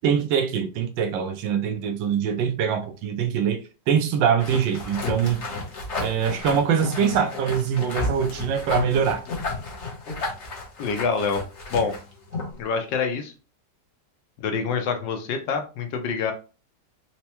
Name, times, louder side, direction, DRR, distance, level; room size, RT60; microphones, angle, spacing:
voice 1, 0.0-3.6 3.9-5.4 6.0-9.2, right 7 dB, 85° right, 1.3 m, -23 dB
sound 1, 4.4-12.6, left 3 dB, 45° left, 1.0 m, -32 dB
voice 2, 10.8-11.4 11.7-11.9 12.6-13.3 14.4-16.3, left 5 dB, 80° left, 1.4 m, -26 dB
4.4 x 2.0 x 2.9 m
omnidirectional pair, 2.0 m